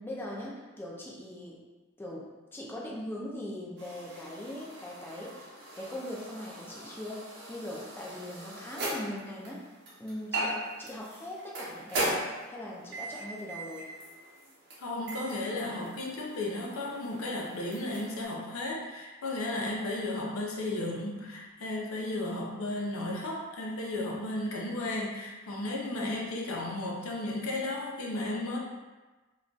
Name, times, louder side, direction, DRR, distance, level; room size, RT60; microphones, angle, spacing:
voice 1, 0.0-1.6 2.0-2.3 2.5-5.5 5.8-7.2 7.5-9.6 10.0-13.9 25.9-26.2, left 1 dB, 10° left, -4 dB, 0.4 m, -40 dB
sound 1, 3.8-18.2, right 1 dB, 55° right, 0.7 m, -39 dB
voice 2, 14.8-28.6, left 2 dB, 90° left, -1 dB, 0.6 m, -34 dB
2.3 x 2.3 x 3.8 m, 1.2 s
head